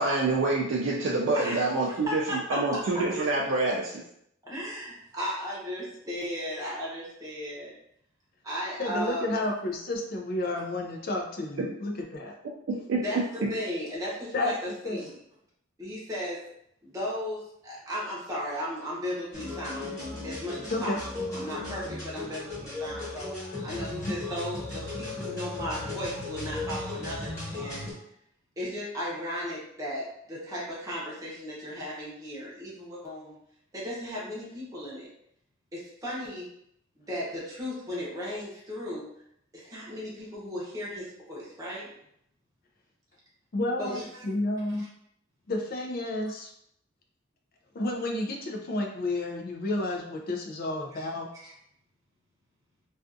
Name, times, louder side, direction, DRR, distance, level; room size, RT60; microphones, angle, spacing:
voice 1, 0.0-4.0 11.6-11.7 12.7-13.0 13.4-13.5, right 2 dB, 80° right, -3 dB, 0.4 m, -27 dB
voice 2, 2.1-2.8 4.4-7.7 8.4-9.4 13.0-15.1 15.8-16.4 16.8-19.9 20.2-23.3 23.6-27.9 28.6-33.3 33.7-35.1 35.7-36.5 37.0-39.1 39.5-41.9 43.8-44.3 44.7-44.9 50.9-51.1 51.4-51.5, equal, 20° right, -6 dB, 0.7 m, -36 dB
voice 3, 8.8-12.3 14.3-14.5 14.8-15.1 20.7-21.0 43.5-44.8 45.5-46.5 47.7-51.3, left 2 dB, 50° left, 2 dB, 0.4 m, -31 dB
sound 1, 19.3-27.9, left 2 dB, 15° left, 1.1 m, -36 dB
2.4 x 2.4 x 2.5 m, 0.73 s
head